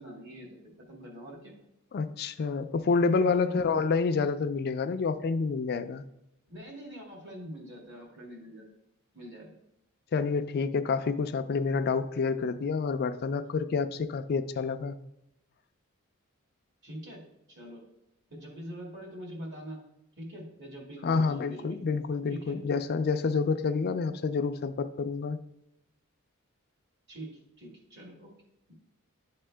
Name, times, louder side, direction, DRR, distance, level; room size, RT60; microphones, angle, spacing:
voice 1, 0.0-1.5 3.2-3.5 6.5-8.7 9.1-9.5 16.8-17.2 17.5-17.8 18.3-19.8 20.2-21.8 22.3-22.6 27.1-27.3 27.6-28.3, equal, 55° right, -1 dB, 2.2 m, -44 dB
voice 2, 1.9-6.0 10.1-15.0 21.0-25.4, left 4 dB, 50° left, 10 dB, 0.4 m, -28 dB
11.0 x 3.7 x 3.3 m, 0.83 s
head